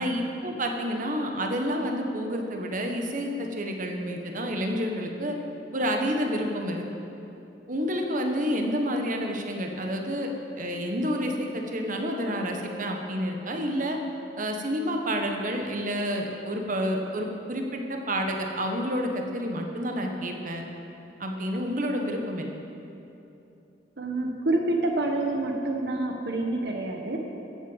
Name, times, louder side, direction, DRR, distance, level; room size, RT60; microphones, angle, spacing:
voice 1, 0.0-5.4 5.7-6.8 7.7-10.3 10.6-14.0 14.4-20.7 21.2-22.5, equal, 50° right, 3 dB, 1.3 m, -29 dB
voice 2, 24.0-27.2, right 2 dB, 65° right, 2 dB, 1.1 m, -27 dB
14.5 x 7.8 x 8.0 m, 2.9 s
head